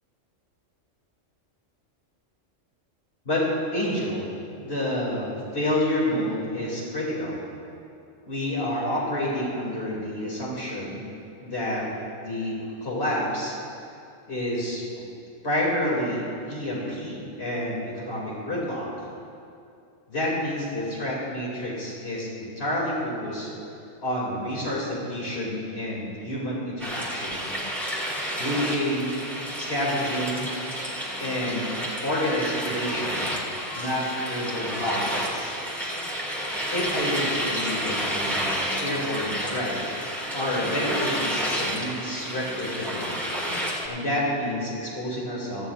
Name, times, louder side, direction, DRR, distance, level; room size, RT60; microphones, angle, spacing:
voice 1, 3.7-4.2 4.6-7.4 8.3-11.0 11.4-11.9 12.2-12.5 12.8-13.6 14.3-15.1 15.4-19.1 20.1-23.5 24.0-27.4 28.4-29.2 29.5-30.5 31.2-31.7 32.0-33.3 33.7-35.5 36.7-39.9 40.3-43.2 43.9-45.7, left 1 dB, 50° left, -5 dB, 3.2 m, -29 dB
sound 1, 26.8-43.9, equal, ahead, 2.1 m, -30 dB
18.0 x 14.5 x 2.6 m, 2.5 s
omnidirectional pair, 1.3 m